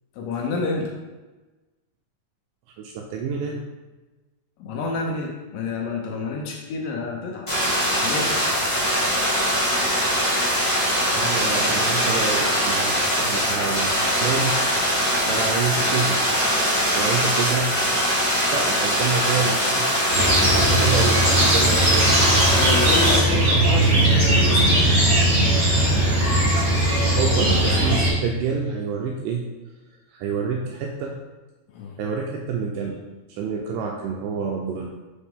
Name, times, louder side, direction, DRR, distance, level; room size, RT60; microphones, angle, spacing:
voice 1, 0.2-0.9 4.6-7.5 7.9-8.4 22.6-25.0 31.7-32.0, left 3 dB, 75° left, 1 dB, 2.2 m, -29 dB
voice 2, 2.8-3.6 11.2-14.6 15.2-16.2 17.0-17.7 18.5-22.1 27.2-29.4 30.1-31.2 32.0-33.0 33.3-34.9, right 5 dB, 85° right, 0 dB, 1.9 m, -27 dB
sound 1, 7.5-23.2, equal, 30° left, 0.5 m, -22 dB
sound 2, 20.1-28.1, right 1 dB, 45° right, 0.9 m, -19 dB
7.3 x 4.3 x 3.5 m, 1.2 s
omnidirectional pair, 4.4 m